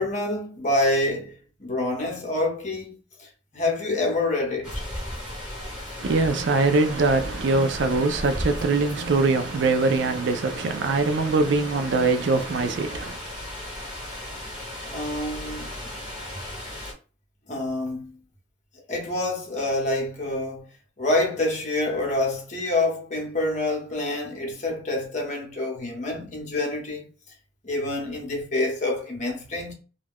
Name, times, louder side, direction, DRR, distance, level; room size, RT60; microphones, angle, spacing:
voice 1, 0.0-1.3 1.6-2.9 3.2-4.8 14.9-15.7 17.5-18.1 18.9-20.7 21.0-27.0 27.6-29.7, left 2 dB, 40° left, 0.9 m, -27 dB
sound 1, 4.6-16.9, left 1 dB, 5° right, 1.1 m, -36 dB
voice 2, 6.0-13.2, right 3 dB, 70° right, 0.4 m, -22 dB
2.3 x 2.2 x 3.4 m
head